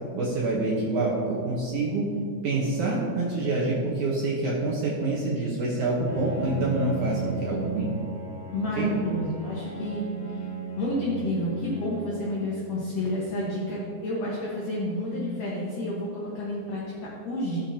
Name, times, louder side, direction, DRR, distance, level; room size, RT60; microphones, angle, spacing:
voice 1, 0.1-2.1 2.4-7.9 8.8-8.9, right 2 dB, 85° right, -5 dB, 1.7 m, -26 dB
Bowed string instrument, 6.1-13.2, right 4 dB, 35° left, 1.5 m, -37 dB
voice 2, 8.5-10.4 10.8-17.6, left 1 dB, 65° left, -5 dB, 2.2 m, -30 dB
18.5 x 7.1 x 2.9 m, 2.5 s
omnidirectional pair, 5.4 m